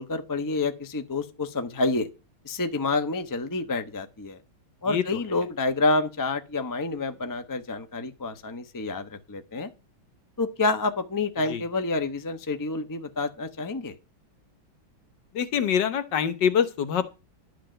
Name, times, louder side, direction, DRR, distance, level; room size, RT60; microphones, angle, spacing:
voice 1, 0.0-2.1 2.4-4.4 4.8-9.7 10.4-13.9, left 3 dB, 20° left, 0.6 m, -28 dB
voice 2, 4.9-5.2 11.5-11.6 15.3-17.1, left 8 dB, 65° left, 1.6 m, -25 dB
11.5 x 4.9 x 7.6 m
omnidirectional pair, 2.2 m